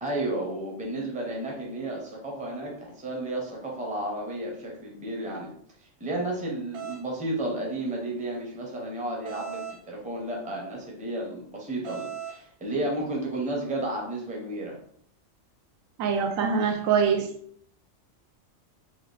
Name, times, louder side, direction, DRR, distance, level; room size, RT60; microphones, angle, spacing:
voice 1, 0.0-5.5 5.8-14.8, right 1 dB, 10° right, -1 dB, 0.5 m, -32 dB
sound 1, 6.7-7.0 9.2-9.8 11.8-12.4, right 9 dB, 65° right, 0.9 m, -37 dB
voice 2, 16.0-17.3, right 6 dB, 90° right, 5 dB, 1.0 m, -24 dB
3.4 x 2.3 x 3.2 m, 0.65 s
omnidirectional pair, 1.3 m